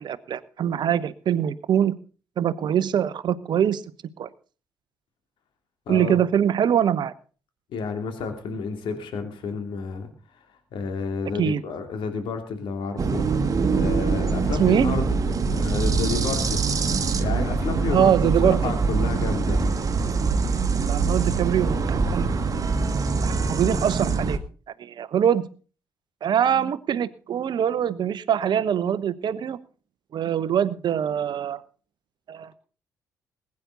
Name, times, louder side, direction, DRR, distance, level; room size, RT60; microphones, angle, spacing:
voice 1, 0.0-2.0 2.4-3.8 4.2-4.3 5.9-7.1 11.4-11.6 14.6-14.9 17.9-18.7 20.9-22.3 22.9-24.4 24.8-25.5 26.2-29.6 30.1-31.6 32.3-32.5, right 9 dB, 55° right, 16 dB, 0.9 m, -23 dB
voice 2, 5.9-6.2 7.7-10.1 10.7-13.2 13.7-15.2 15.5-18.1 18.4-19.8, left 5 dB, 60° left, 6 dB, 2.8 m, -30 dB
sound 1, 13.0-24.4, right 4 dB, 40° right, 1.7 m, -24 dB
20.5 x 9.6 x 3.9 m, 0.37 s
figure-of-eight pair, 40°, 9 cm